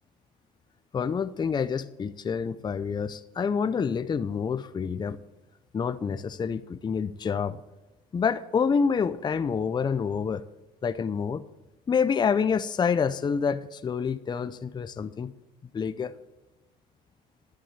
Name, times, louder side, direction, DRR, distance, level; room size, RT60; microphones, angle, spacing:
voice 1, 0.9-5.2 5.7-7.6 8.1-10.4 10.8-11.4 11.9-15.3 15.7-16.1, left 6 dB, 25° left, 13 dB, 0.5 m, -27 dB
11.5 x 6.2 x 8.1 m, 1.0 s
cardioid pair, 110°, 17 cm